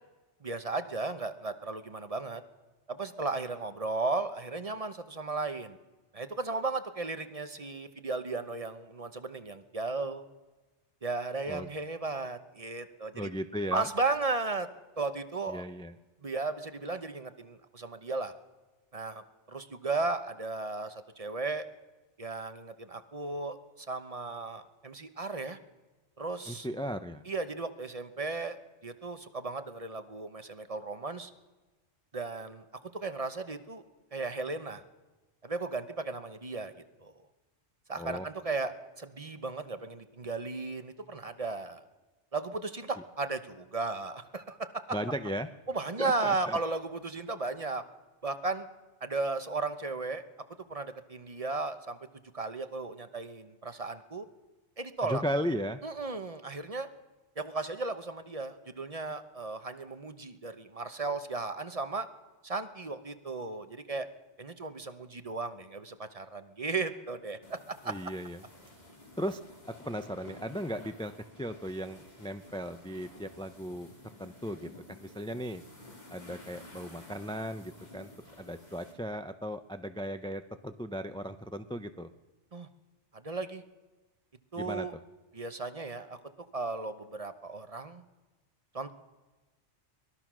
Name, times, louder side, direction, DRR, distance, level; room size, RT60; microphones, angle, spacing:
voice 1, 0.4-2.4 2.9-5.8 6.1-10.3 11.0-13.3 13.7-14.7 15.0-15.6 16.2-18.3 18.9-21.7 22.2-25.6 26.2-26.7 27.3-31.3 32.1-32.6 32.9-33.8 34.1-34.8 35.4-36.7 37.0-37.1 37.9-41.8 42.3-45.0 45.7-47.8 48.2-48.7 49.0-50.2 50.7-52.0 52.3-54.3 54.8-55.2 55.8-56.9 57.4-62.1 62.4-64.1 64.4-67.9 82.5-82.7 83.1-83.6 84.5-84.9 85.3-86.2 86.5-88.0 88.7-88.9, right 3 dB, 30° right, 9 dB, 1.0 m, -35 dB
voice 2, 13.1-13.9 15.5-15.9 26.5-27.2 38.0-38.3 44.9-45.5 46.0-46.6 55.0-55.8 67.9-68.4 69.2-69.4 69.8-71.1 71.4-73.9 74.2-75.6 76.1-78.1 78.4-82.1 84.6-85.0, equal, 5° left, 9 dB, 0.4 m, -36 dB
sound 1, 67.4-78.9, left 1 dB, 35° left, 3.8 m, -52 dB
23.0 x 20.0 x 6.2 m, 1.2 s
omnidirectional pair, 1.2 m